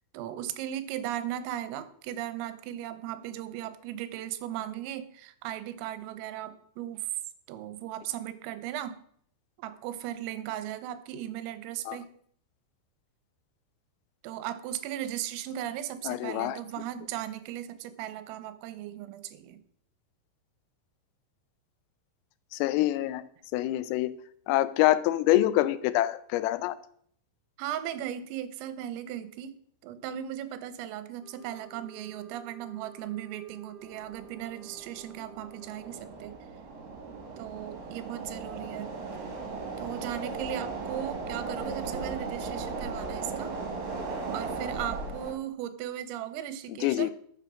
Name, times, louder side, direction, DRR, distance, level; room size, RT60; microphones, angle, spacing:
voice 1, 0.1-7.1 7.5-9.0 9.6-12.1 14.2-19.6 27.6-29.5 29.8-36.3 37.4-38.9 39.8-43.6 44.3-47.1, right 11 dB, 85° right, 13 dB, 3.6 m, -37 dB
voice 2, 16.1-16.6 22.5-23.2 23.5-24.1 24.5-26.8 46.8-47.1, left 15 dB, 90° left, 15 dB, 3.4 m, -25 dB
sound 1, 31.2-36.1, right 2 dB, 20° right, 3.7 m, -53 dB
sound 2, 33.8-45.3, right 4 dB, 60° right, 5.2 m, -37 dB
12.5 x 7.5 x 6.2 m, 0.63 s
omnidirectional pair, 5.8 m